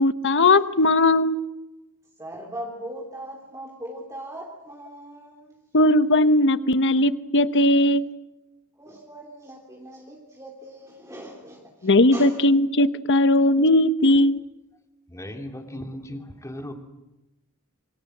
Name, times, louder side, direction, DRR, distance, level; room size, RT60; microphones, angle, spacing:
voice 1, 0.0-1.4 5.7-8.1 11.8-14.4, left 1 dB, 55° left, 12 dB, 1.1 m, -18 dB
voice 2, 2.2-5.6 8.8-12.4, right 1 dB, 15° right, -1 dB, 3.2 m, -39 dB
voice 3, 15.1-16.7, left 1 dB, 15° left, 4 dB, 2.9 m, -37 dB
28.0 x 25.0 x 7.9 m, 1.0 s
head